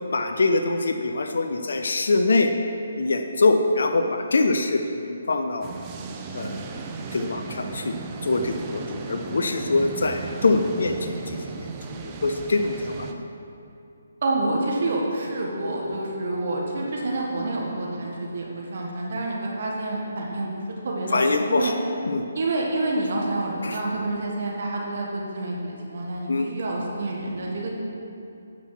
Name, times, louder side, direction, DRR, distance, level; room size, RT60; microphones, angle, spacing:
voice 1, 0.1-2.5 3.0-5.7 6.3-6.8 7.1-8.0 8.2-13.2 21.1-21.7 22.1-22.3 23.6-23.8 26.3-26.5, left 3 dB, 65° left, 5 dB, 0.6 m, -24 dB
sound 1, 5.6-13.1, right 4 dB, 25° right, 0.7 m, -36 dB
voice 2, 14.2-21.2 21.4-21.7 22.3-27.8, right 2 dB, 55° right, -2 dB, 1.7 m, -28 dB
9.8 x 6.1 x 5.9 m, 2.7 s
figure-of-eight pair, 145°, 0 cm